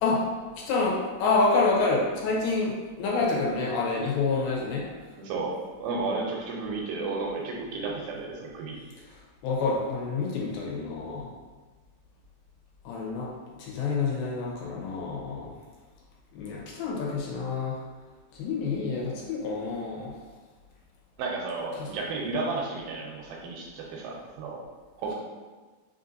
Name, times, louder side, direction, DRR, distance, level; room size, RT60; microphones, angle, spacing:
voice 1, 0.6-4.9 9.4-11.3 12.9-13.3 13.6-15.5 16.4-17.8 18.3-20.1 21.7-21.9, left 3 dB, 80° left, -3 dB, 2.5 m, -28 dB
voice 2, 5.2-8.8 21.2-24.7 25.0-25.1, right 3 dB, 85° right, -2 dB, 2.4 m, -33 dB
5.5 x 2.6 x 2.5 m, 1.3 s
omnidirectional pair, 4.2 m